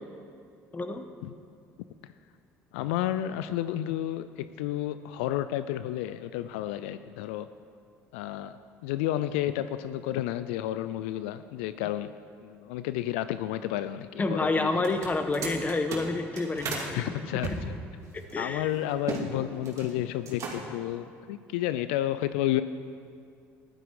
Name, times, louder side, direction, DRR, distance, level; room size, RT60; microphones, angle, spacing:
voice 1, 0.7-1.0 14.2-17.1 18.3-18.7, left 3 dB, 25° left, 7 dB, 1.2 m, -28 dB
voice 2, 2.7-7.5 8.1-12.1 12.4-14.8 16.9-17.8 18.4-22.6, left 13 dB, 90° left, 12 dB, 0.4 m, -31 dB
sound 1, 14.8-16.9 17.4-19.3 19.5-19.9 20.2-20.8, right 4 dB, 55° right, 2.5 m, -36 dB
14.0 x 11.5 x 4.8 m, 2.3 s
supercardioid pair, 80°, 6 cm